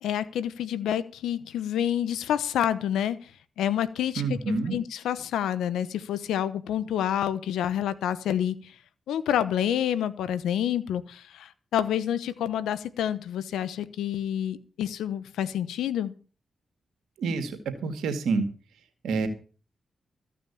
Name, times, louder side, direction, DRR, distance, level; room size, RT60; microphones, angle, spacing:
voice 1, 0.0-3.3 3.6-8.7 9.1-16.1, left 10 dB, 90° left, 16 dB, 0.9 m, -28 dB
voice 2, 4.2-4.7 17.2-17.5 17.8-18.4 19.0-19.3, right 4 dB, 85° right, 9 dB, 2.2 m, -27 dB
14.5 x 6.0 x 8.4 m, 0.38 s
supercardioid pair, 45°, 0 cm